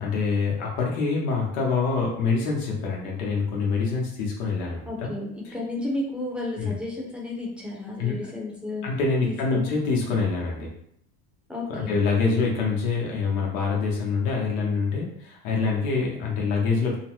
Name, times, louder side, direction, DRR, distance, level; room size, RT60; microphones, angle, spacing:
voice 1, 0.0-5.1 6.5-6.7 8.0-8.2 8.8-10.7 11.7-17.0, left 4 dB, 85° left, -2 dB, 1.1 m, -25 dB
voice 2, 4.9-8.9 9.2-9.7 11.5-12.0, left 2 dB, ahead, -3 dB, 0.7 m, -32 dB
3.1 x 2.0 x 3.0 m, 0.71 s
supercardioid pair, 105°, 43 cm